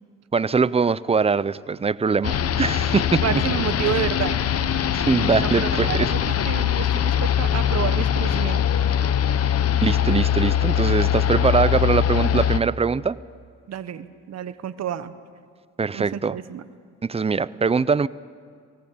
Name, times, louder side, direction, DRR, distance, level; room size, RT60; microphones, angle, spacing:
voice 1, 0.3-3.2 4.9-6.1 9.8-13.2 15.8-16.4 17.0-18.1, right 5 dB, 20° right, 18 dB, 0.5 m, -22 dB
sound 1, 2.2-12.6, left 9 dB, 50° left, 0.9 m, -22 dB
voice 2, 3.1-4.4 5.4-8.6 13.7-15.1 15.9-16.6, right 9 dB, 60° right, 12 dB, 1.1 m, -29 dB
19.5 x 18.0 x 8.6 m, 2.1 s
cardioid pair, 90°, 30 cm